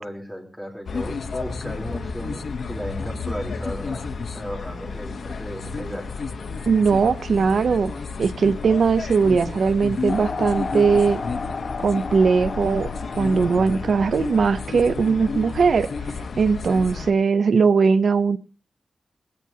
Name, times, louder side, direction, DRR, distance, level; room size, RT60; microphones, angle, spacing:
voice 1, 0.0-6.1, equal, 5° right, 2 dB, 3.6 m, -35 dB
sound 1, 0.9-17.1, left 4 dB, 70° left, 1.0 m, -32 dB
voice 2, 6.7-7.9 8.2-11.2 11.8-15.9 16.4-18.4, right 5 dB, 70° right, 14 dB, 0.7 m, -19 dB
sound 2, 10.1-16.1, left 4 dB, 50° left, 1.7 m, -34 dB
20.5 x 17.0 x 2.8 m, 0.32 s
wide cardioid pair, 165°, 0 cm